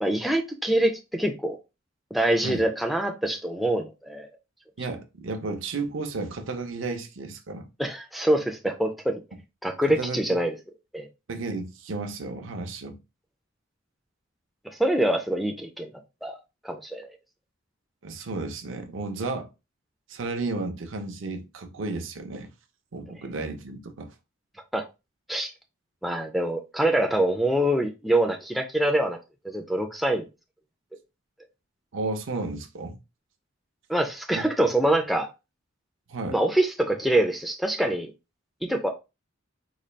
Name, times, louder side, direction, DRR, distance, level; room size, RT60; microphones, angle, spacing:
voice 1, 0.0-1.6 2.1-4.3 7.8-9.2 9.6-10.6 10.9-11.1 14.7-15.9 16.2-16.4 16.6-17.1 24.7-24.9 25.3-25.5 26.0-29.2 29.4-30.2 33.9-35.3 36.3-38.1 38.6-38.9, right 1 dB, ahead, 0.4 m, -25 dB
voice 2, 4.8-7.7 9.9-10.4 11.3-13.0 18.0-19.5 20.1-22.5 22.9-24.1 31.9-33.0 34.3-34.7 36.1-36.4, right 3 dB, 70° right, 0.6 m, -33 dB
3.9 x 2.3 x 3.2 m
head